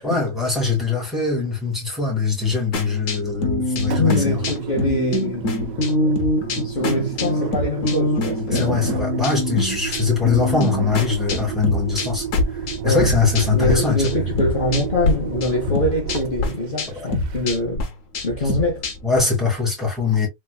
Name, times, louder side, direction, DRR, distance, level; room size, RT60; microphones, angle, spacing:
voice 1, 0.0-4.4 8.5-12.2 12.8-14.2 16.9-17.1 19.0-20.3, left 4 dB, ahead, 2.3 m, -22 dB
sound 1, 2.7-13.8 14.0-15.1 15.4-19.2, left 2 dB, 90° left, 1.3 m, -25 dB
Engine, 3.7-17.7, right 8 dB, 70° right, 0.4 m, -32 dB
voice 2, 4.0-5.5 6.6-9.0 12.8-13.1 13.5-17.8 18.2-18.8, left 1 dB, 45° left, 1.1 m, -24 dB
3.5 x 3.4 x 2.3 m
omnidirectional pair, 1.3 m